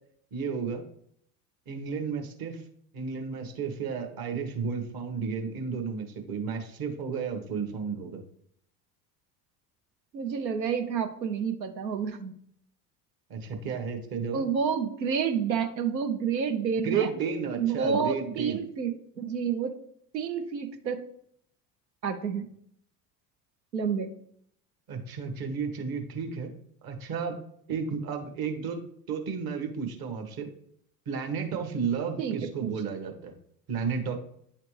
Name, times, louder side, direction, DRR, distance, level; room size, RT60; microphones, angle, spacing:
voice 1, 0.3-0.8 1.7-2.6 2.9-8.2 13.3-14.4 16.8-18.6 24.9-26.5 26.8-27.3 27.7-28.8 29.1-30.5 31.1-33.3 33.7-34.1, right 6 dB, 45° right, 4 dB, 1.4 m, -32 dB
voice 2, 10.1-12.3 14.3-17.1 17.6-19.7 20.1-21.0 22.0-22.5 23.7-24.1 32.2-32.7, right 6 dB, 90° right, 7 dB, 0.8 m, -29 dB
9.7 x 3.3 x 3.2 m, 0.67 s
figure-of-eight pair, 65°, 49 cm